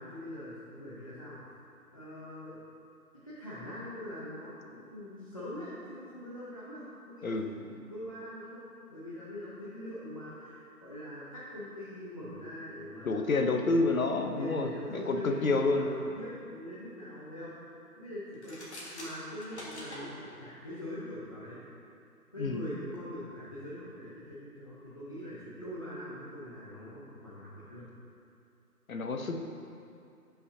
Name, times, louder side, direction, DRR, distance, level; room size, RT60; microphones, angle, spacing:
voice 1, 0.0-1.5 1.9-2.6 3.1-17.6 18.0-21.6 22.3-27.9, left 1 dB, 20° left, -10 dB, 0.7 m, -43 dB
voice 2, 13.0-15.9 22.4-22.6 28.9-29.4, left 3 dB, 60° left, 4 dB, 0.9 m, -29 dB
sound 1, 18.3-20.0, left 1 dB, 45° left, 1.8 m, -45 dB
14.5 x 5.7 x 2.8 m, 2.5 s
figure-of-eight pair, 160°, 47 cm